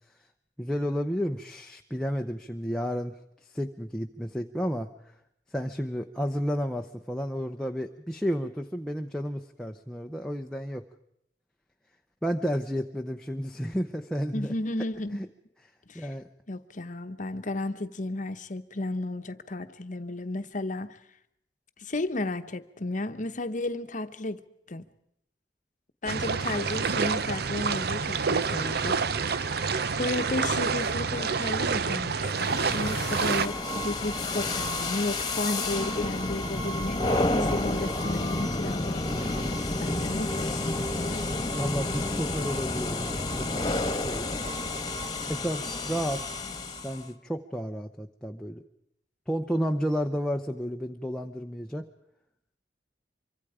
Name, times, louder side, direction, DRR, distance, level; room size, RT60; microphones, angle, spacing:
voice 1, 0.6-3.1 3.5-4.9 5.5-10.8 12.2-14.5 15.1-15.3 15.9-16.3 41.5-44.3 45.3-46.4 46.8-48.6 49.3-51.9, equal, 5° left, 0.8 m, -32 dB
voice 2, 14.3-15.2 15.9-16.1 16.5-21.0 21.8-24.4 24.7-24.8 26.0-29.0 29.4-37.0 37.5-41.3, left 2 dB, 45° left, 1.0 m, -33 dB
sound 1, 26.1-33.5, right 5 dB, 65° right, 0.7 m, -28 dB
sound 2, 32.3-47.1, left 2 dB, 25° left, 1.6 m, -30 dB
25.0 x 24.0 x 5.0 m
head